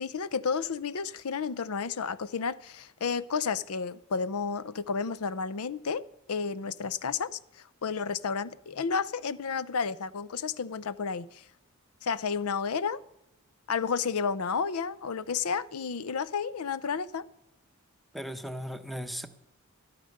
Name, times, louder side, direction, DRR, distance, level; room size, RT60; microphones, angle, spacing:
voice 1, 0.0-11.4 12.0-13.0 13.7-17.3, left 5 dB, 75° left, 0.6 m, -31 dB
voice 2, 18.1-19.3, equal, ahead, 0.8 m, -37 dB
13.5 x 13.0 x 6.5 m
head